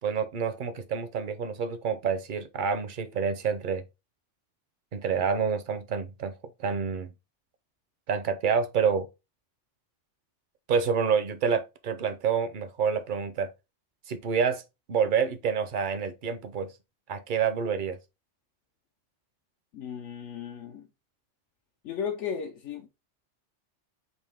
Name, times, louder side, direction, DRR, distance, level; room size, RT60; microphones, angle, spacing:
voice 1, 0.0-3.8 4.9-6.3 6.6-7.1 8.1-9.1 10.7-13.5 14.1-14.6 14.9-16.7 17.1-18.0, right 6 dB, 55° right, 0.6 m, -28 dB
voice 2, 19.7-20.9 21.8-22.9, left 7 dB, 80° left, 1.0 m, -35 dB
5.5 x 2.6 x 3.4 m
omnidirectional pair, 1.2 m